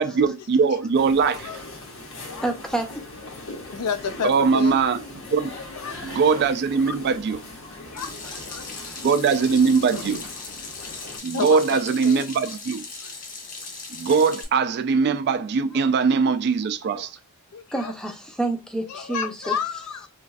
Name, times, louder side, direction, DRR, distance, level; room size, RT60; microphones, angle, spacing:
voice 1, 0.0-1.6 4.2-5.5 6.0-7.4 8.9-10.2 11.2-12.8 13.9-17.2, right 5 dB, 50° right, 0.3 m, -21 dB
sound 1, 0.9-11.2, left 2 dB, 60° left, 1.0 m, -40 dB
voice 2, 1.2-1.6 2.3-2.5 3.0-3.1 3.5-4.8 5.8-6.0 6.9-7.0 7.8-9.0 9.9-10.0 10.8-12.3 16.8-17.1 17.5-17.9 18.9-20.1, left 7 dB, 85° left, 0.5 m, -32 dB
voice 3, 2.4-3.1 8.6-8.7 17.7-19.5, right 2 dB, 5° left, 0.6 m, -28 dB
Water tap faucet / Sink (filling or washing), 8.0-14.4, left 4 dB, 35° left, 0.8 m, -38 dB
3.1 x 2.5 x 2.3 m
head